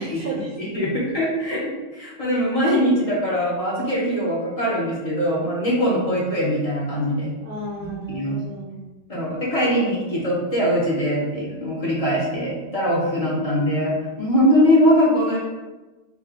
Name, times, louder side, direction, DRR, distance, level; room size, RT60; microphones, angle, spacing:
voice 1, 0.0-0.9 6.0-6.1 7.4-8.8 13.3-13.5, right 1 dB, 60° right, -3 dB, 0.7 m, -33 dB
voice 2, 0.6-7.3 7.8-8.4 9.1-15.4, equal, 30° left, -7 dB, 1.0 m, -22 dB
4.6 x 2.3 x 2.8 m, 1.1 s
omnidirectional pair, 1.2 m